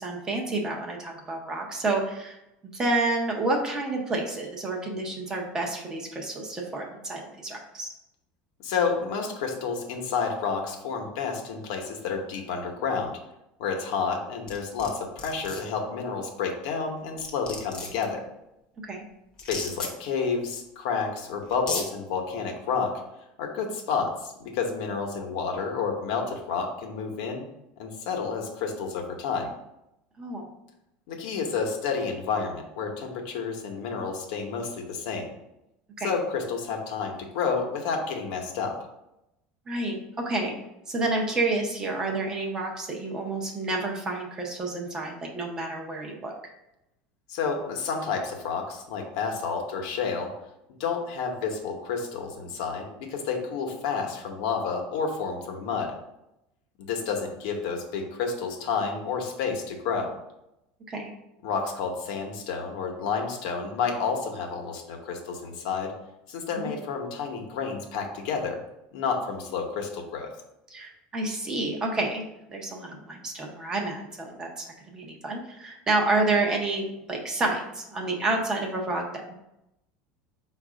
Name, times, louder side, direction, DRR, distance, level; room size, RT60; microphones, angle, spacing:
voice 1, 0.0-2.4 2.7-7.9 18.8-19.0 30.2-30.4 36.0-36.1 39.7-40.5 40.9-46.3 60.9-61.1 66.5-66.7 70.7-79.3, right 2 dB, 15° right, 0 dB, 0.6 m, -29 dB
voice 2, 8.6-13.1 13.6-18.2 19.5-22.9 23.4-27.5 27.8-29.5 31.1-35.3 36.0-38.7 47.3-50.3 50.8-55.9 56.9-60.1 61.4-65.9 66.3-68.6 68.9-70.3, left 5 dB, 70° left, 2 dB, 0.9 m, -30 dB
sound 1, 14.5-14.9 15.2-15.6 16.8-16.9 17.2-18.0 19.4-19.9 21.0-21.1 21.5-21.8, left 3 dB, 25° left, 0.8 m, -33 dB
4.5 x 2.4 x 4.9 m, 0.87 s
cardioid pair, 170°, 4 cm